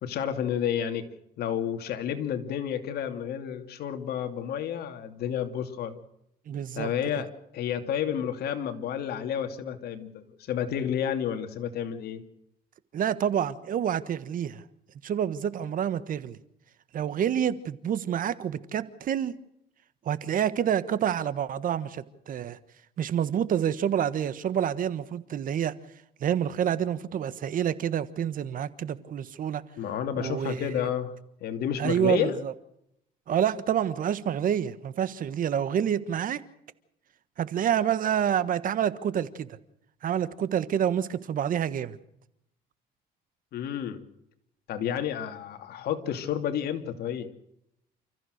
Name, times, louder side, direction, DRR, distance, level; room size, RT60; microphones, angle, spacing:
voice 1, 0.0-1.1 1.4-6.0 6.7-12.2 29.8-31.1 31.4-32.4 43.5-44.0 44.7-47.3, left 9 dB, 70° left, 2.7 m, -30 dB
voice 2, 6.5-6.9 12.9-14.6 15.0-16.4 16.9-19.3 20.0-22.6 23.0-25.7 26.2-29.6 30.2-30.9 31.8-32.5 33.3-36.4 37.4-39.5 40.0-42.0, right 9 dB, 55° right, 1.4 m, -28 dB
29.5 x 14.5 x 6.6 m
cardioid pair, 110°, 17 cm